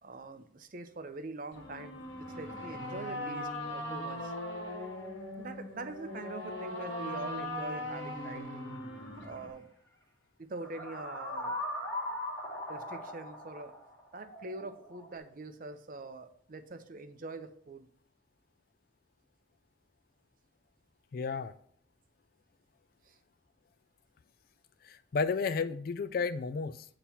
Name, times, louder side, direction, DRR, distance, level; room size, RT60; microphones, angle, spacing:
voice 1, 0.0-4.3 5.4-8.4 9.2-9.7 10.4-11.6 12.7-13.7 14.1-17.9 23.1-23.2, right 3 dB, 45° right, 9 dB, 0.6 m, -44 dB
sound 1, 1.5-9.5, left 1 dB, 70° left, 1.3 m, -39 dB
sound 2, 9.2-9.4 10.6-15.2, left 1 dB, 15° left, 1.2 m, -39 dB
voice 2, 21.1-21.5 24.8-26.9, left 5 dB, 50° left, 13 dB, 0.3 m, -32 dB
8.5 x 3.0 x 5.5 m, 0.64 s
head